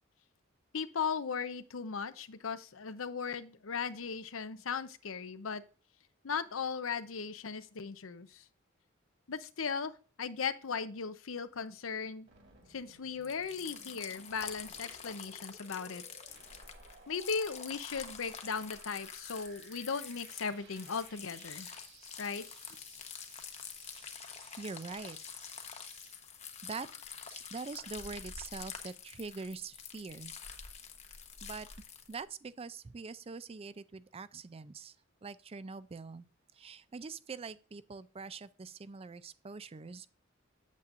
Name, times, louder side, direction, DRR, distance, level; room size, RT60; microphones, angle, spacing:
voice 1, 0.7-5.6 6.2-8.4 9.3-12.3 12.7-16.0 17.1-21.7 22.2-22.4, left 5 dB, 85° left, 0.7 m, -37 dB
sound 1, 12.3-26.2, right 4 dB, 60° right, 2.5 m, -59 dB
sound 2, 13.2-32.2, left 7 dB, 35° left, 1.0 m, -47 dB
voice 2, 24.6-25.2 26.6-26.9 27.3-30.3 31.4-31.7 32.1-35.0 35.2-36.3 36.5-40.1, right 4 dB, 30° right, 0.4 m, -44 dB
8.4 x 8.2 x 2.5 m
head